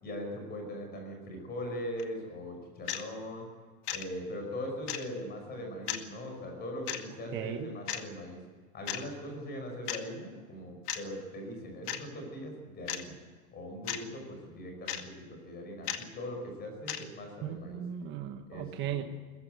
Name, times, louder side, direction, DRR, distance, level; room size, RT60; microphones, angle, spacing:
voice 1, 0.0-3.5 3.9-8.4 8.7-13.2 13.5-17.8 18.5-19.0, equal, 20° left, 3 dB, 5.5 m, -40 dB
sound 1, 2.0-2.1 2.9-3.0 3.9-4.0 4.9-5.0 5.9-6.0 6.9-7.0 7.9-8.0 8.9-9.0 9.9-10.0 10.9-11.0 11.9-12.0 12.9-13.1 13.9-14.0 14.9-15.0 15.9-16.0 16.9-17.0, left 11 dB, 80° left, 2.2 m, -34 dB
voice 2, 7.3-7.7 17.4-19.0, right 10 dB, 25° right, 5 dB, 1.3 m, -37 dB
21.5 x 15.0 x 9.1 m, 1.5 s
supercardioid pair, 160°, 45 cm